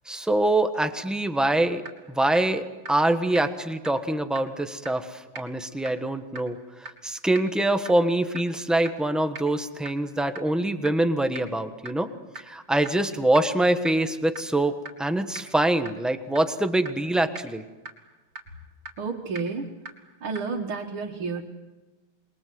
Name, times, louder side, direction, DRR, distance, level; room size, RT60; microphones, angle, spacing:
voice 1, 0.1-1.8 2.1-12.1 12.3-17.6, right 1 dB, ahead, 7 dB, 0.8 m, -24 dB
sound 1, 1.9-2.0 2.4-2.5 2.9-3.0 3.4-3.5 3.9-4.0 4.4-4.5 4.9-5.0 5.4-5.5 5.9-6.0 6.4-6.5 6.9-7.0 7.4-7.5 7.9-8.0 8.4-8.5 8.9-9.0 9.4-9.5 9.9-10.0 10.4-10.5 10.9-11.0 11.4-11.5 11.9-12.0 12.4-12.5 12.9-13.0 13.3-13.4 13.9-14.0 14.4-14.5 14.9-15.0 15.4-15.5 15.9-16.0 16.4-16.5 16.9-17.0 17.4-17.5 17.9-18.0 18.4-18.5 18.9-19.0 19.4-19.5 19.9-20.0 20.4-20.5, right 2 dB, 30° right, 3.5 m, -37 dB
voice 2, 19.0-19.7 20.2-21.4, right 4 dB, 80° right, -2 dB, 2.7 m, -30 dB
28.0 x 22.0 x 7.7 m, 1.2 s
omnidirectional pair, 2.3 m